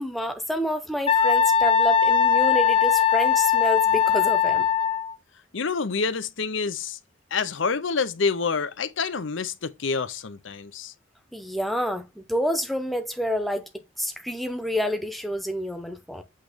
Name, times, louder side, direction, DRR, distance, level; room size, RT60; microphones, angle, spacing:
voice 1, 0.0-4.7 11.3-13.7 14.0-16.2, equal, ahead, 0.9 m, -28 dB
Wind instrument woodwind instrument, 1.1-5.1, left 8 dB, 25° left, 0.7 m, -20 dB
voice 2, 5.5-7.0 7.3-10.9, left 5 dB, 70° left, 0.7 m, -27 dB
8.4 x 3.2 x 5.1 m
head